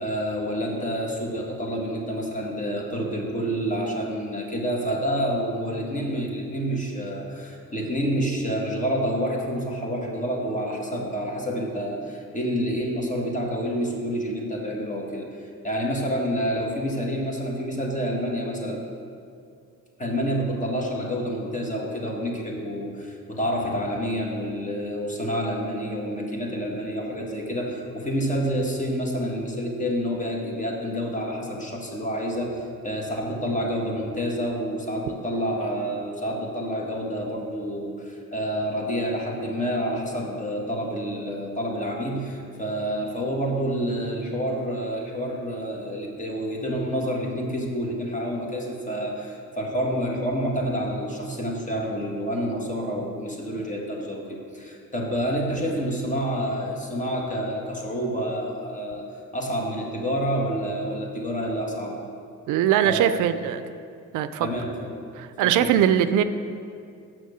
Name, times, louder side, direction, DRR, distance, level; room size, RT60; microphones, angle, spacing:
voice 1, 0.0-18.8 20.0-59.0 59.3-62.0 62.8-63.5 64.4-64.9 65.4-65.8, equal, 25° left, -1 dB, 1.6 m, -28 dB
voice 2, 62.5-63.6 64.1-64.5 65.2-66.2, right 10 dB, 85° right, 11 dB, 0.5 m, -21 dB
6.4 x 6.2 x 6.7 m, 2.4 s
cardioid pair, 90°, 30 cm